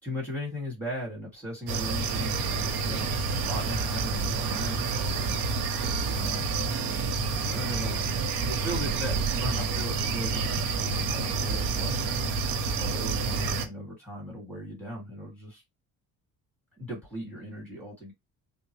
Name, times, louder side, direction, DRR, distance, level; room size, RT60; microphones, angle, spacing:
voice 1, 0.0-5.0 6.1-6.6 7.4-12.0 12.8-15.6 16.8-18.1, equal, 5° left, 2.2 m, -38 dB
sound 1, 1.7-13.7, right 4 dB, 85° right, 0.8 m, -28 dB
3.6 x 2.1 x 3.1 m
cardioid pair, 140°, 33 cm